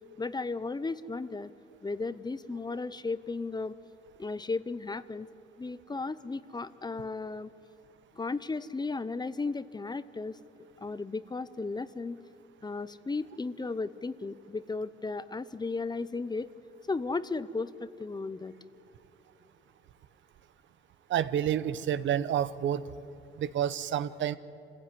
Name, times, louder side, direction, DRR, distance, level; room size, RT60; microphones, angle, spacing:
voice 1, 0.2-1.5 1.8-3.8 4.2-5.3 5.6-7.5 8.1-10.4 10.8-12.2 12.6-16.5 16.9-18.5, left 3 dB, 20° left, 15 dB, 0.8 m, -35 dB
voice 2, 21.1-22.8 23.4-24.4, right 10 dB, 70° right, 14 dB, 0.9 m, -29 dB
25.5 x 15.5 x 9.8 m, 2.7 s
cardioid pair, 90°, 20 cm